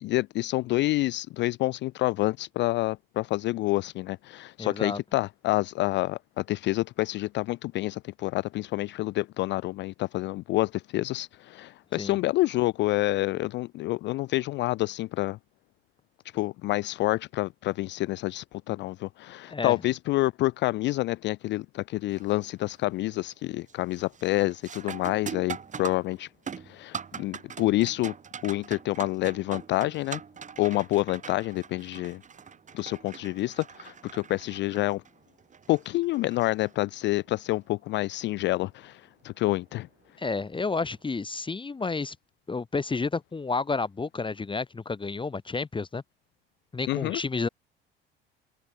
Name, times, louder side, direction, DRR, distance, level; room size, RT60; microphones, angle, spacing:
voice 1, 0.0-15.4 16.3-26.3 26.6-28.1 28.4-30.2 30.6-32.2 32.7-35.0 35.7-39.9 46.9-47.2, left 18 dB, 40° left, 0.4 m, -28 dB
voice 2, 4.6-5.0 12.0-12.2 19.5-19.7 40.2-42.2 42.5-46.0 46.7-47.5, left 4 dB, 15° left, 1.1 m, -30 dB
sound 1, 22.1-22.5 22.9-23.3 23.7-37.2 39.7-39.8 40.6-40.9, right 6 dB, 25° right, 1.2 m, -42 dB
figure-of-eight pair, 60°, 29 cm